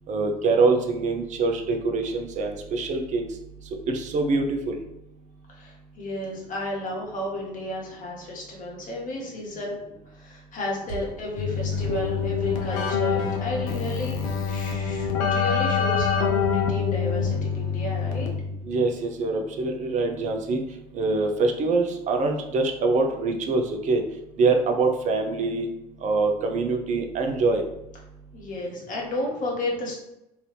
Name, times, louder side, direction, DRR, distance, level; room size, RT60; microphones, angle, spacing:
voice 1, 0.1-3.2 3.9-4.8 18.6-20.6 20.9-24.0 24.4-25.7 26.0-27.6, right 3 dB, 35° right, 4 dB, 0.6 m, -24 dB
voice 2, 5.5-9.8 10.1-18.3 28.3-29.9, left 1 dB, 40° left, -2 dB, 1.2 m, -32 dB
sound 1, 10.9-18.2, left 2 dB, 55° right, 1.3 m, -38 dB
Keyboard (musical), 11.4-18.7, left 6 dB, 65° left, 0.6 m, -26 dB
2.8 x 2.6 x 3.2 m, 0.89 s
hypercardioid pair, 65°, 20 cm